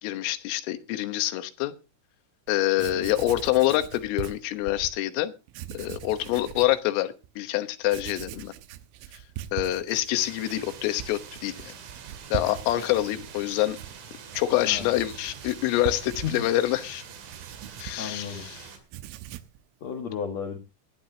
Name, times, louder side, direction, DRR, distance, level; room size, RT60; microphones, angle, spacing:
voice 1, 0.0-1.7 2.5-5.3 5.7-8.5 9.5-11.7 12.3-13.8 14.3-17.0 17.8-18.7, left 15 dB, 90° left, 10 dB, 3.7 m, -26 dB
Writing, 2.5-2.6 2.8-5.0 5.5-6.8 7.2-7.3 7.8-18.5 18.8-19.6, right 12 dB, 90° right, 3.5 m, -41 dB
sound 1, 10.1-18.8, right 7 dB, 70° right, 4.7 m, -45 dB
voice 2, 18.0-18.5 19.8-20.6, left 7 dB, 60° left, 5 dB, 1.8 m, -33 dB
19.5 x 12.0 x 2.8 m, 0.30 s
omnidirectional pair, 5.7 m